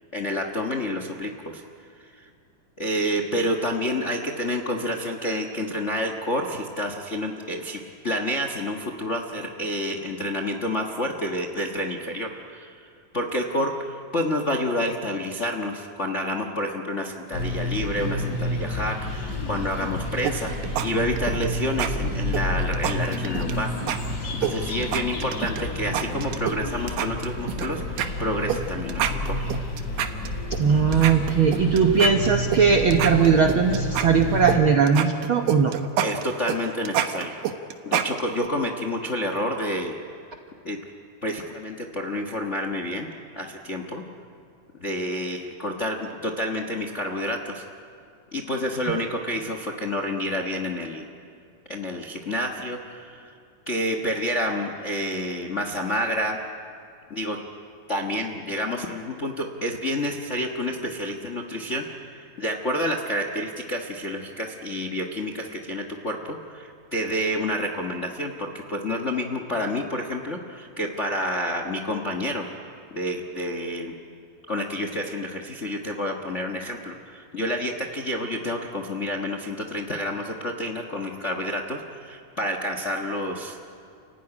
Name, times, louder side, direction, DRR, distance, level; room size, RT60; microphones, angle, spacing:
voice 1, 0.1-1.6 2.1-2.3 2.8-23.7 24.4-29.4 36.0-37.4 37.8-40.0 40.6-40.8 41.2-43.1 43.4-44.0 44.8-47.6 48.3-51.1 51.7-53.3 53.7-56.4 57.1-57.4 57.9-73.9 74.5-83.6, left 1 dB, 85° left, 4 dB, 0.6 m, -29 dB
sound 1, 17.3-34.6, left 1 dB, 30° left, 3.2 m, -30 dB
sound 2, 20.3-20.9 21.2-21.5 21.8-21.9 22.3-23.6 23.9-24.0 24.4-25.6 25.9-26.6 26.9-27.7 28.0-28.1 28.5-28.6 28.9-30.6 30.9-32.6 32.9-34.6 34.9-38.5, right 11 dB, 90° right, 2.7 m, -27 dB
voice 2, 30.6-35.7, right 6 dB, 65° right, 3 dB, 1.3 m, -19 dB
29.5 x 16.0 x 9.9 m, 2.4 s
omnidirectional pair, 3.7 m